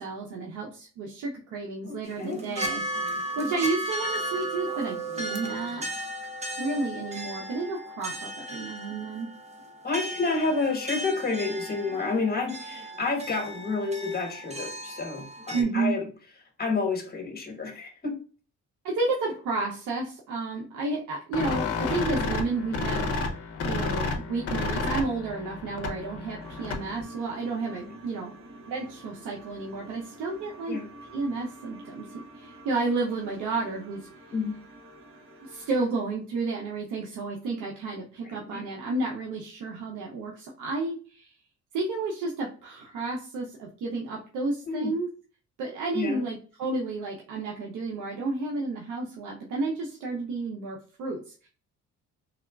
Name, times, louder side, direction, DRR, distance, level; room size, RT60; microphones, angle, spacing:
voice 1, 0.0-5.8 6.6-9.3 15.5-15.9 18.8-28.3 28.7-30.8 31.1-34.1 35.4-41.3 41.7-45.1 45.6-51.5, right 3 dB, 80° right, -2 dB, 0.7 m, -31 dB
voice 2, 1.8-2.4 9.8-16.0 16.6-18.2 27.8-27.9 30.7-30.9 34.3-34.5 38.2-38.6 44.7-44.9 45.9-46.2, left 3 dB, 30° left, 3 dB, 1.2 m, -30 dB
sound 1, 2.1-15.6, right 1 dB, 20° right, 0.6 m, -35 dB
sound 2, 21.3-27.0, left 3 dB, 50° left, 0.7 m, -31 dB
sound 3, 26.4-35.9, right 1 dB, 45° right, 0.9 m, -48 dB
3.5 x 2.2 x 2.2 m, 0.39 s
cardioid pair, 90°, 30 cm